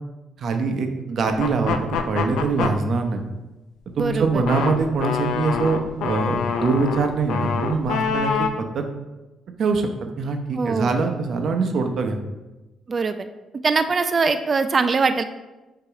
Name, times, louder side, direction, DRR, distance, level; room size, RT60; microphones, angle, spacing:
voice 1, 0.4-3.2 4.0-8.9 9.6-9.9 10.2-12.2, right 4 dB, 60° right, 5 dB, 0.8 m, -23 dB
sound 1, 1.3-2.7 3.9-8.5, left 6 dB, 85° left, 0.5 m, -26 dB
voice 2, 4.0-4.4 10.5-10.9 12.9-13.3 13.6-15.2, right 4 dB, 40° right, 9 dB, 0.4 m, -22 dB
6.8 x 2.9 x 4.7 m, 1.1 s
cardioid pair, 90°, 0 cm